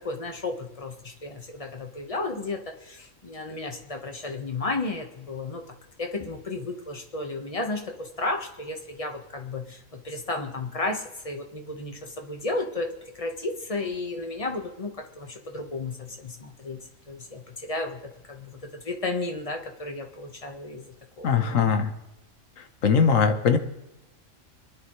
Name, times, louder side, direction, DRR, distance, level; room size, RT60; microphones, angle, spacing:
voice 1, 0.0-5.6 6.0-16.8 17.1-21.8, left 2 dB, 30° left, 4 dB, 1.3 m, -33 dB
voice 2, 21.2-21.9 22.8-23.6, left 6 dB, 85° left, 7 dB, 1.4 m, -20 dB
25.5 x 10.0 x 3.2 m, 0.95 s
omnidirectional pair, 1.3 m